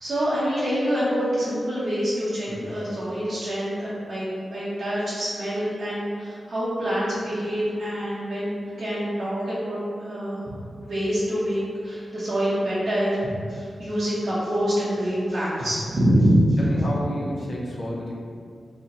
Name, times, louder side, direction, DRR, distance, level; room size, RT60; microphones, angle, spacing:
voice 1, 0.0-10.5 10.8-16.6, equal, 70° right, -10 dB, 0.8 m, -25 dB
voice 2, 2.5-2.8 16.1-16.2 16.6-18.1, left 1 dB, 50° left, -4 dB, 0.5 m, -31 dB
2.8 x 2.1 x 3.9 m, 2.2 s
wide cardioid pair, 80°, 0 cm